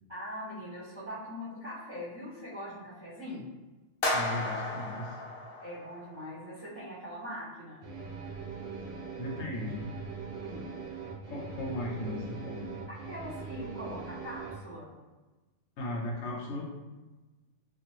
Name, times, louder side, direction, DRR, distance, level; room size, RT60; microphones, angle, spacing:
voice 1, 0.1-3.5 5.6-7.8 10.3-10.7 13.1-14.9, equal, 20° right, -11 dB, 1.4 m, -42 dB
sound 1, 4.0-6.3, left 2 dB, 55° left, 0.7 m, -33 dB
voice 2, 4.1-5.2 9.2-9.9 11.3-12.8 15.8-16.6, left 1 dB, 75° left, -2 dB, 1.0 m, -37 dB
sound 2, 7.8-14.5, right 5 dB, 70° right, 1.0 m, -41 dB
2.7 x 2.5 x 2.9 m, 1.2 s
omnidirectional pair, 1.4 m